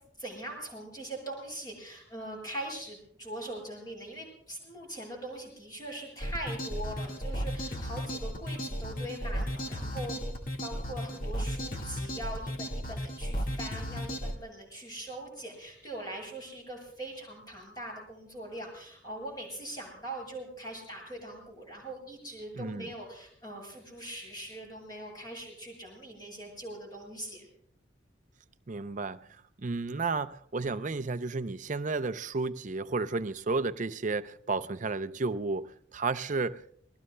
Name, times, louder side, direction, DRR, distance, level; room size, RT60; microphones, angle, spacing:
voice 1, 0.2-10.2 10.6-27.5, right 1 dB, 20° left, 7.8 m, -42 dB
sound 1, 6.2-14.3, equal, 50° left, 1.8 m, -35 dB
voice 2, 22.5-22.9 28.7-29.2 29.6-36.6, right 3 dB, 40° right, 0.6 m, -32 dB
29.0 x 21.0 x 2.2 m
head